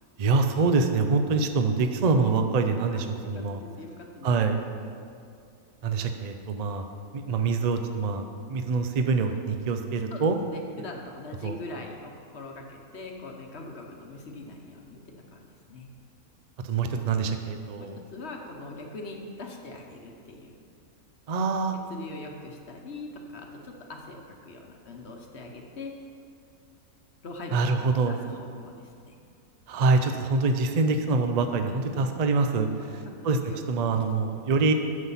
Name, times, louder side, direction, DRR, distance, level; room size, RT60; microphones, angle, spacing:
voice 1, 0.2-3.6 4.2-4.6 5.8-6.8 7.1-10.4 11.4-11.6 16.6-18.0 21.3-21.8 27.5-28.2 29.7-33.0 33.2-33.4 33.7-34.7, right 4 dB, 80° right, 6 dB, 0.3 m, -25 dB
voice 2, 3.3-4.6 10.1-10.2 10.5-15.0 15.3-15.4 15.7-15.9 17.8-20.5 21.9-25.9 27.2-27.6 27.9-29.2 31.7-32.1 32.8-33.6 34.2-34.3, left 2 dB, 50° left, 2 dB, 1.1 m, -42 dB
9.6 x 7.3 x 5.7 m, 2.4 s
omnidirectional pair, 1.6 m